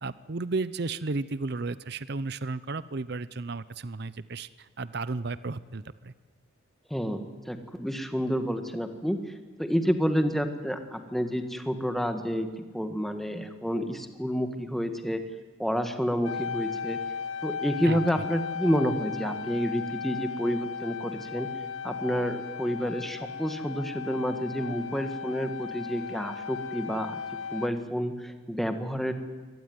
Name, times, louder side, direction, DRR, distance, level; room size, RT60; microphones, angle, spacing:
voice 1, 0.0-6.1 17.8-18.0, right 3 dB, 50° right, 16 dB, 0.7 m, -33 dB
voice 2, 6.9-9.2 9.6-15.2 15.6-17.0 17.4-21.5 21.8-27.2 27.5-29.1, equal, ahead, 7 dB, 1.7 m, -29 dB
sound 1, 16.2-27.7, left 6 dB, 85° left, 1.2 m, -36 dB
24.5 x 18.5 x 9.5 m, 1.4 s
head